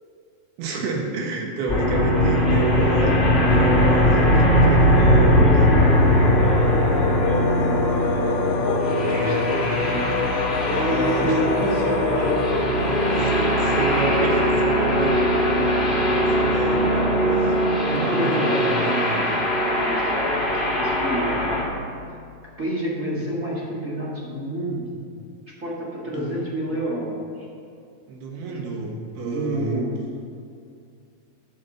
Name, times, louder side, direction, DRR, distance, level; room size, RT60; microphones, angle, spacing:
voice 1, 0.6-4.2 4.5-5.5 8.7-9.7 10.7-11.4 13.3-13.4 13.7-17.6 17.9-19.4 26.1-26.4 28.1-29.8, right 2 dB, 80° right, 0 dB, 3.4 m, -29 dB
sound 1, 1.7-21.6, equal, 40° left, 0.8 m, -20 dB
voice 2, 5.2-6.1 6.3-13.8 17.9-21.5 22.6-25.1 25.6-27.5 29.2-30.0, equal, 35° right, -6 dB, 1.4 m, -29 dB
sound 2, 5.7-15.1, left 7 dB, 85° left, 2.6 m, -28 dB
12.5 x 6.4 x 6.7 m, 2.4 s
omnidirectional pair, 4.4 m